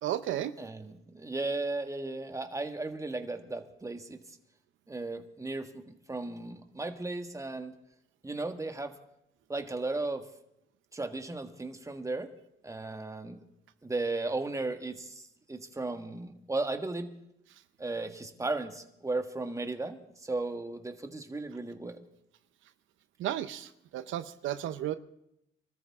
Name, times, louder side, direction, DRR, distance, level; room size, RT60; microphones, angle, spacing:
voice 1, 0.0-0.5 23.2-24.9, right 12 dB, 80° right, 11 dB, 0.8 m, -33 dB
voice 2, 0.6-4.2 4.9-7.7 8.2-8.9 9.5-10.3 10.9-12.3 12.6-13.4 13.8-17.1 17.8-22.0, right 2 dB, 15° right, 6 dB, 1.7 m, -35 dB
25.0 x 13.5 x 3.7 m, 0.82 s
cardioid pair, 90°, 20 cm